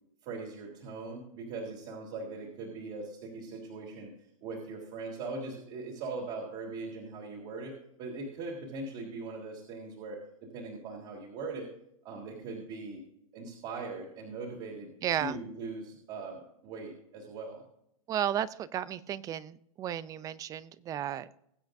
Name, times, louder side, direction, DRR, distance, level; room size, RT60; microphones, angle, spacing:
voice 1, 0.2-4.1 4.4-11.7 12.0-13.0 13.3-17.6, right 3 dB, 40° right, -2 dB, 3.2 m, -40 dB
voice 2, 15.0-15.4 18.1-21.4, right 10 dB, 20° right, 18 dB, 0.4 m, -33 dB
21.5 x 8.0 x 2.6 m, 0.76 s
hypercardioid pair, 135°, 17 cm